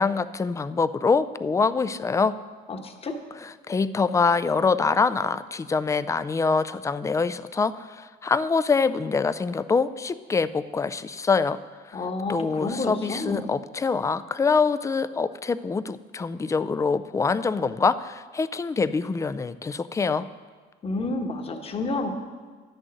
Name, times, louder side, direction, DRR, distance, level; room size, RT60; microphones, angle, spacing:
voice 1, 0.0-2.4 3.4-11.6 11.9-12.0 12.3-20.3, left 4 dB, 20° left, 14 dB, 0.4 m, -25 dB
voice 2, 2.7-3.2 11.9-13.5 20.8-22.1, left 2 dB, 35° left, 4 dB, 1.3 m, -30 dB
10.5 x 6.4 x 7.7 m, 1.5 s
cardioid pair, 110°, 17 cm